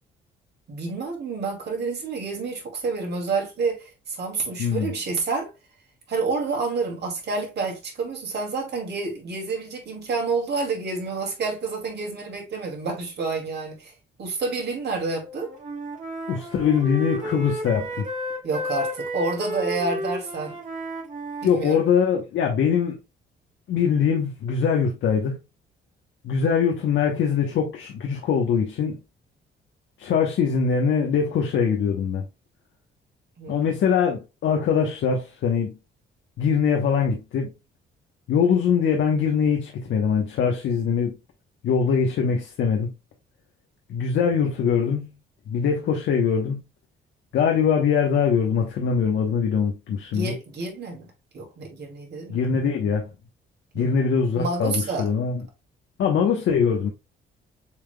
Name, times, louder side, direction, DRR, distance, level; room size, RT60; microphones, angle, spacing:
voice 1, 0.7-5.5 6.1-13.9 14.2-15.5 18.4-20.6 21.4-21.8 33.4-33.7 50.1-52.5 53.7-54.1 54.3-55.1, right 4 dB, 55° right, 2.4 m, -29 dB
voice 2, 4.6-4.9 16.3-18.1 21.4-23.0 23.7-25.4 26.2-29.0 30.0-32.2 33.5-35.7 36.4-37.5 38.3-41.2 41.6-42.9 43.9-45.1 45.5-46.6 47.3-50.3 52.3-53.1 53.7-55.4 56.0-56.9, left 6 dB, 70° left, 1.0 m, -22 dB
Wind instrument woodwind instrument, 15.2-22.0, equal, 40° right, 1.9 m, -32 dB
7.0 x 3.4 x 2.2 m
cardioid pair, 90°, 20 cm